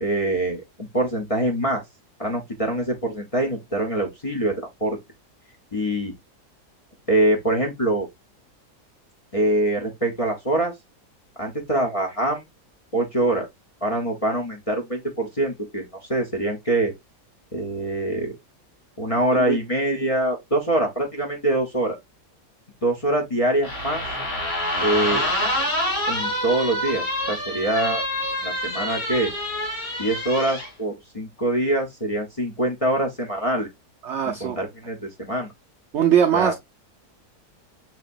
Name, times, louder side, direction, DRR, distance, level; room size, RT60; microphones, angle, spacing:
voice 1, 0.0-1.8 2.2-5.0 5.7-6.1 7.1-8.1 9.3-10.7 11.4-12.4 12.9-13.4 13.8-16.9 17.5-18.4 19.0-21.9 22.8-24.0 24.8-25.3 26.1-28.0 28.4-29.3 30.0-33.7 34.2-35.5 36.3-36.5, right 1 dB, 30° left, 0.7 m, -24 dB
sound 1, 23.6-30.7, left 1 dB, 60° left, 2.4 m, -27 dB
voice 2, 34.0-34.6 35.9-36.5, right 9 dB, 70° right, 0.6 m, -21 dB
6.2 x 2.9 x 2.5 m
omnidirectional pair, 1.8 m